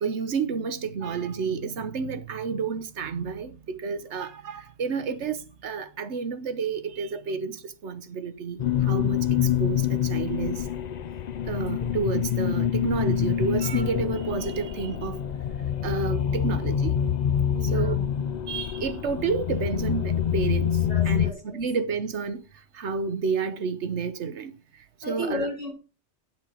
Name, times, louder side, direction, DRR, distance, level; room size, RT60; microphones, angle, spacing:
voice 1, 0.0-7.6 7.8-9.2 9.6-10.6 11.5-15.2 15.8-17.0 17.7-17.9 18.5-20.7 21.0-22.4 22.7-24.5 25.1-25.5, right 5 dB, 70° right, 1.2 m, -30 dB
sound 1, 8.6-21.3, left 9 dB, 55° left, 0.5 m, -26 dB
voice 2, 17.4-18.1 20.8-21.6 25.0-25.7, equal, 30° right, 5.4 m, -35 dB
9.0 x 6.3 x 4.9 m
omnidirectional pair, 1.2 m